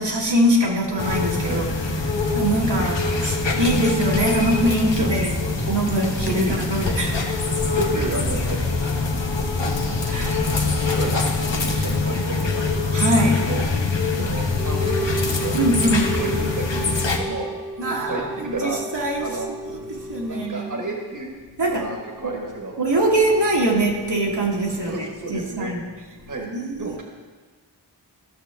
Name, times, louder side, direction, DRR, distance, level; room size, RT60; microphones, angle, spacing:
voice 1, 0.0-1.7 2.1-5.3 5.7-7.8 9.2-10.5 12.9-13.5 15.5-16.2 17.8-19.3 19.7-20.8 21.6-21.9 22.2-22.3 22.8-25.8 26.4-27.0, right 1 dB, 65° right, -3 dB, 1.6 m, -23 dB
sound 1, 1.0-17.2, left 3 dB, 75° left, 1.1 m, -24 dB
voice 2, 5.7-6.6 7.7-8.6 10.4-12.7 13.5-15.6 15.9-17.5 17.8-18.8 19.2-19.5 20.3-21.4 21.6-22.7 24.8-25.7 26.3-26.5 26.8-27.0, right 2 dB, 45° right, 0 dB, 1.5 m, -31 dB
sound 2, 14.6-21.3, right 2 dB, ahead, 0.8 m, -34 dB
14.0 x 6.2 x 3.5 m, 1.4 s
wide cardioid pair, 45°, 44 cm